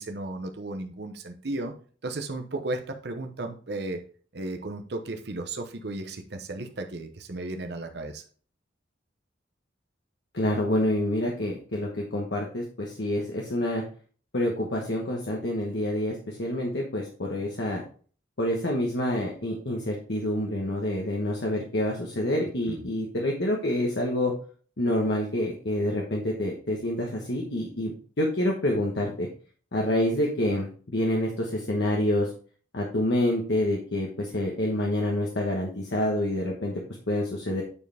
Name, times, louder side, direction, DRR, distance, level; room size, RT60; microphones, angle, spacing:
voice 1, 0.0-1.7 2.0-4.0 4.3-8.2 22.7-22.8, right 2 dB, 60° right, 5 dB, 0.8 m, -34 dB
voice 2, 10.3-13.8 14.3-17.8 18.4-24.3 24.8-29.3 29.7-32.3 32.7-37.6, left 1 dB, 65° left, -1 dB, 1.2 m, -27 dB
8.7 x 4.7 x 3.4 m, 0.42 s
head